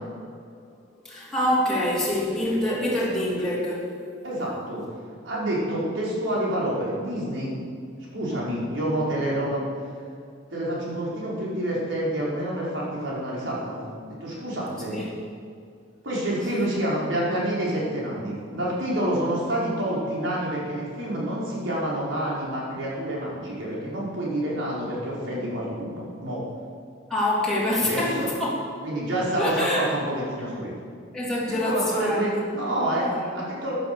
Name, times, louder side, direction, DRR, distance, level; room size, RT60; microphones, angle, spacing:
voice 1, 1.0-4.1 14.9-15.1 16.5-16.7 27.1-28.6 29.2-29.8 31.1-32.6 33.0-33.2, left 1 dB, 5° left, -8 dB, 3.3 m, -26 dB
voice 2, 4.2-4.8 5.2-7.6 8.1-9.6 10.5-13.8 14.1-15.0 16.0-26.4 27.8-28.3 28.8-30.7 31.4-33.1 33.3-33.7, right 1 dB, 70° right, -6 dB, 4.7 m, -28 dB
14.5 x 10.5 x 6.9 m, 2.2 s
head